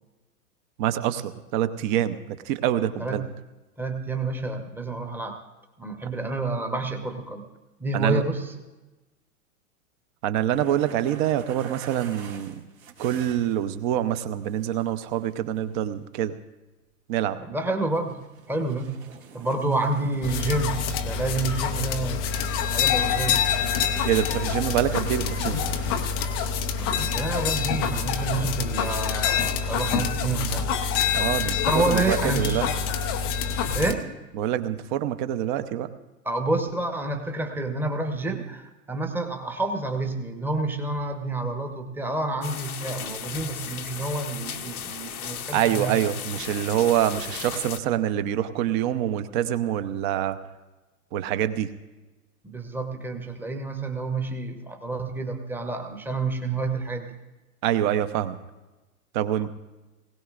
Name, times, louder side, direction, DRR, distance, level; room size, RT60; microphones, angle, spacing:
voice 1, 0.8-3.2 7.9-8.2 10.2-12.5 13.0-16.4 17.1-17.4 24.0-25.6 31.1-32.7 34.3-35.9 45.5-50.4 51.1-51.7 57.6-58.4 59.1-59.5, right 11 dB, 35° right, 12 dB, 0.8 m, -25 dB
voice 2, 3.8-5.4 5.8-7.4 7.8-8.5 17.4-18.2 18.5-18.9 19.3-22.3 22.7-23.4 26.7-30.7 31.6-32.6 33.7-34.0 36.2-46.0 52.4-57.1, right 2 dB, 5° right, 5 dB, 1.0 m, -29 dB
sound 1, 10.5-13.9 14.4-15.9 17.9-21.1 21.5-21.9 22.7-26.3 26.6-26.7 27.0-27.4 27.7-27.9 28.8-28.9, right 6 dB, 60° right, 1.9 m, -46 dB
sound 2, 20.2-33.9, left 7 dB, 20° left, 0.4 m, -26 dB
sound 3, 42.4-47.8, left 8 dB, 75° left, 0.9 m, -36 dB
20.0 x 17.0 x 2.5 m, 1.1 s
figure-of-eight pair, 105°, 44 cm